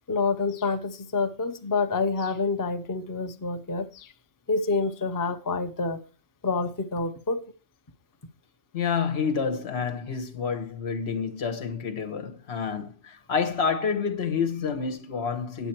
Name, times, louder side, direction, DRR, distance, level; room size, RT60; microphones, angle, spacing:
voice 1, 0.1-4.1 4.5-6.0 6.4-7.4, left 3 dB, 25° left, 0.5 m, -27 dB
voice 2, 8.7-15.7, left 6 dB, 90° left, 1.4 m, -28 dB
8.9 x 7.5 x 4.4 m
omnidirectional pair, 1.1 m